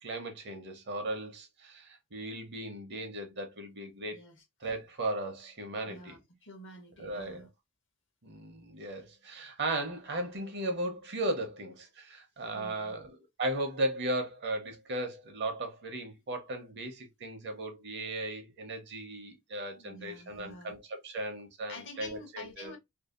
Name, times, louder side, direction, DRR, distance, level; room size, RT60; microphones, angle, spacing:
voice 1, 0.0-4.2 4.6-6.2 7.0-7.5 8.2-22.7, right 1 dB, 50° right, 0.7 m, -36 dB
voice 2, 4.1-4.4 5.8-7.5 12.5-13.0 19.7-20.8 21.7-22.8, left 2 dB, 55° left, 0.8 m, -48 dB
2.6 x 2.3 x 2.4 m
head